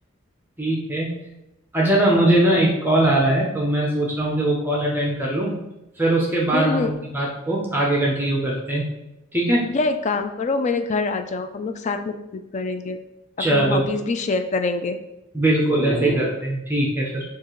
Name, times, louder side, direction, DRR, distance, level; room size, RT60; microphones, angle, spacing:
voice 1, 0.6-1.2 1.7-5.6 6.0-6.9 7.1-8.8 9.3-9.6 13.4-13.9 15.3-17.2, right 1 dB, 10° right, -3 dB, 0.6 m, -21 dB
voice 2, 6.5-6.9 9.7-12.2 12.5-13.0 13.4-15.0, left 3 dB, 35° left, 8 dB, 0.3 m, -25 dB
6.9 x 2.5 x 3.0 m, 0.92 s
head